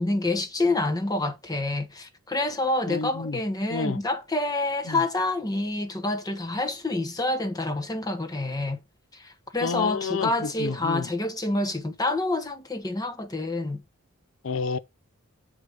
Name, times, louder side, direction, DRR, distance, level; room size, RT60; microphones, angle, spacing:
voice 1, 0.0-8.8 9.1-13.8, left 2 dB, 15° left, 1.0 m, -27 dB
voice 2, 2.9-3.4 3.7-4.0 4.9-5.0 9.6-11.1 14.4-14.8, left 4 dB, 65° left, 0.6 m, -30 dB
7.9 x 5.0 x 4.9 m
head